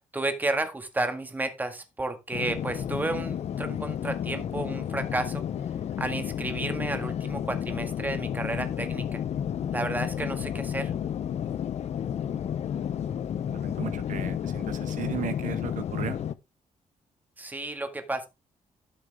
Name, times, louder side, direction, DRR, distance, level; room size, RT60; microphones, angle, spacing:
voice 1, 0.1-5.4 6.0-9.2 9.7-10.9 17.4-18.3, right 2 dB, 15° right, 1.7 m, -32 dB
sound 1, 2.3-16.3, left 9 dB, 55° left, 0.6 m, -31 dB
voice 2, 13.5-16.2, right 10 dB, 70° right, 1.0 m, -36 dB
12.5 x 6.5 x 3.5 m
wide cardioid pair, 155°, 14 cm